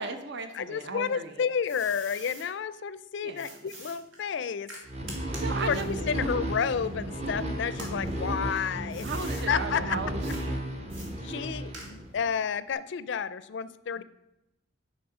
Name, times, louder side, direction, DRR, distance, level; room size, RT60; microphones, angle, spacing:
voice 1, 0.0-1.4 3.2-3.7 5.3-6.1 9.0-10.6 14.0-14.1, right 3 dB, 60° right, 8 dB, 0.7 m, -36 dB
voice 2, 0.5-4.7 5.6-9.1 9.5-10.0 11.2-14.0, left 7 dB, 65° left, 15 dB, 0.4 m, -31 dB
sound 1, 1.0-2.5 3.4-7.3 7.7-9.5 10.2-10.4 10.9-12.2, right 1 dB, 80° right, 2.2 m, -46 dB
sound 2, 4.9-12.3, right 1 dB, 35° right, 1.0 m, -33 dB
8.7 x 5.5 x 4.8 m, 0.91 s
head